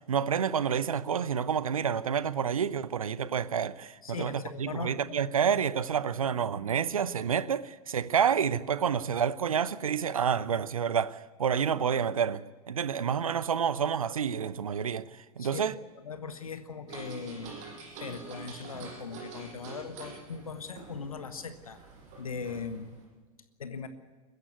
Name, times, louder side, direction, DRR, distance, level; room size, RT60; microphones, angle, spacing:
voice 1, 0.0-15.8, right 7 dB, 70° right, 0.8 m, -29 dB
voice 2, 4.0-4.9 15.4-15.6 16.0-17.5 18.0-21.8 22.2-22.9 23.6-23.9, left 5 dB, 75° left, 1.5 m, -39 dB
sound 1, 16.9-23.1, right 4 dB, 40° right, 7.0 m, -46 dB
22.0 x 15.0 x 9.4 m
figure-of-eight pair, 90°, 18 cm